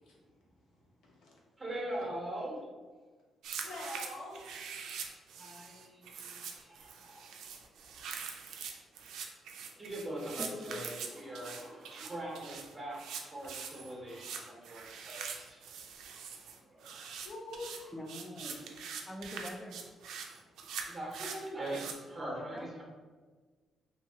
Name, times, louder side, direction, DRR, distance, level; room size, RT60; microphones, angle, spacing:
voice 1, 1.0-1.4 3.6-4.6 11.5-11.7 17.2-17.9, left 1 dB, 70° left, -3 dB, 0.8 m, -45 dB
voice 2, 1.6-2.6 5.2-8.0 9.8-15.6 16.7-17.0 20.8-22.8, right 1 dB, 15° right, -3 dB, 0.7 m, -42 dB
sound 1, 3.4-21.9, right 6 dB, 85° right, 0.3 m, -44 dB
voice 3, 10.4-10.8 17.9-18.7 19.1-19.8 22.5-22.8, left 1 dB, 10° left, 2 dB, 0.3 m, -43 dB
2.7 x 2.7 x 2.8 m, 1.4 s
cardioid pair, 175°, 0 cm